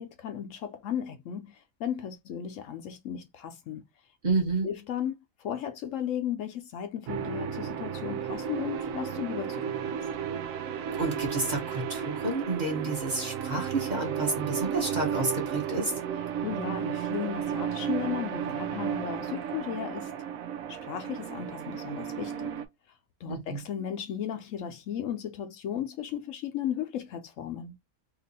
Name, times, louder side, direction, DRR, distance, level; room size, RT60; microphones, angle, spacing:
voice 1, 0.0-3.9 4.6-10.0 10.2-10.5 16.4-20.1 20.7-22.5 23.2-27.8, left 9 dB, 70° left, 0.9 m, -35 dB
voice 2, 4.2-4.7 11.0-15.9 23.3-23.6, right 3 dB, 35° right, 1.0 m, -30 dB
sound 1, 7.1-22.6, right 8 dB, 75° right, 1.0 m, -33 dB
2.9 x 2.5 x 3.9 m
omnidirectional pair, 1.5 m